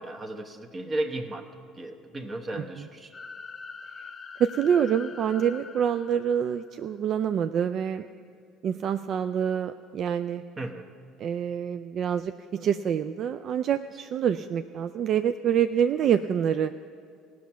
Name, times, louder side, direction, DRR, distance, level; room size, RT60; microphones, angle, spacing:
voice 1, 0.0-1.5 1.8-3.1 10.6-10.9, right 2 dB, 35° right, 5 dB, 1.0 m, -34 dB
sound 1, 3.1-6.9, left 5 dB, 30° left, 0.8 m, -44 dB
voice 2, 4.4-8.1 8.6-10.4 11.2-16.7, right 8 dB, 55° right, 10 dB, 0.3 m, -26 dB
17.5 x 6.2 x 5.7 m, 2.3 s
hypercardioid pair, 65°, 0 cm